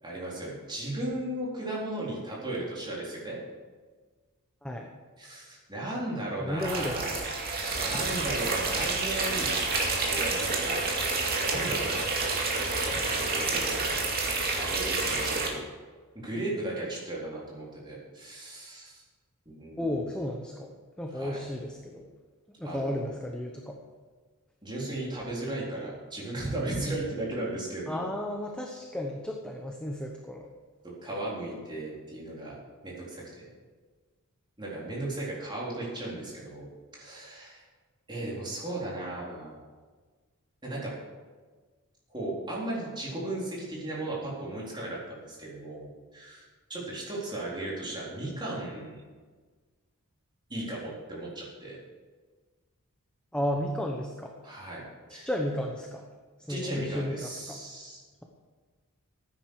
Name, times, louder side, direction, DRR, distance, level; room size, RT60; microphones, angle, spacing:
voice 1, 0.0-3.4 5.2-7.2 7.7-9.5 10.1-12.1 13.2-13.8 14.6-15.6 16.1-19.0 19.5-19.8 21.1-21.4 22.6-23.1 24.6-28.1 31.0-32.6 32.8-33.5 34.6-36.7 36.9-37.6 38.1-39.6 40.6-40.9 42.1-46.4 46.7-48.9 50.5-51.8 54.4-55.3 56.5-58.0, right 1 dB, 20° right, -5 dB, 3.9 m, -36 dB
voice 2, 4.6-4.9 6.4-7.1 19.8-22.1 22.6-23.8 27.9-30.5 53.3-54.3 55.1-56.0 56.5-57.6, left 1 dB, 5° left, 1 dB, 1.0 m, -33 dB
sound 1, 6.6-15.5, right 3 dB, 45° right, 2.4 m, -29 dB
15.0 x 9.5 x 4.9 m, 1.4 s
head